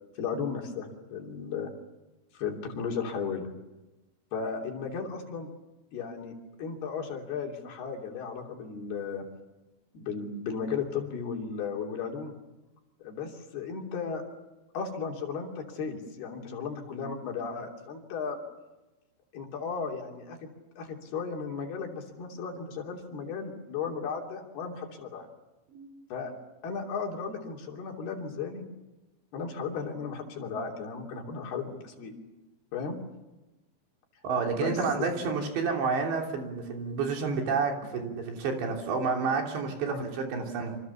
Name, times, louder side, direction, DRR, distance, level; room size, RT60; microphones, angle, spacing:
voice 1, 0.2-1.7 2.3-3.5 4.3-5.5 5.9-9.3 9.9-12.3 13.0-14.2 14.7-18.4 19.3-25.3 26.1-26.3 26.6-28.6 29.3-32.1 32.7-33.0 34.5-35.1 39.9-40.0, left 5 dB, 60° left, 1 dB, 4.8 m, -35 dB
voice 2, 34.2-40.8, right 5 dB, 70° right, 2 dB, 5.4 m, -30 dB
27.0 x 27.0 x 7.2 m, 1.0 s
omnidirectional pair, 5.3 m